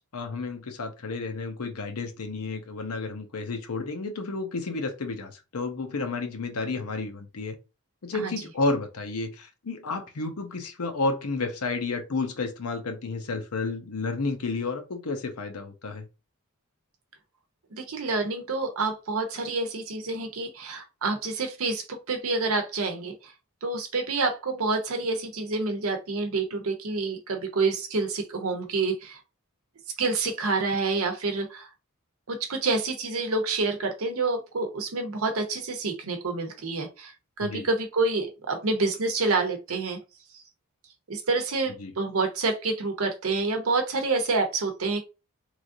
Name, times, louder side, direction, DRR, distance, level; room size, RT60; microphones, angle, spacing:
voice 1, 0.1-7.6 8.0-16.1 37.4-37.7 41.8-41.9, left 3 dB, 85° left, 0.7 m, -31 dB
voice 2, 8.1-8.4 17.7-23.3 23.6-29.2 30.0-31.7 32.3-37.1 37.4-40.0 40.3-40.4 41.1-45.0, right 3 dB, 70° right, 0.7 m, -28 dB
3.1 x 2.5 x 2.5 m
head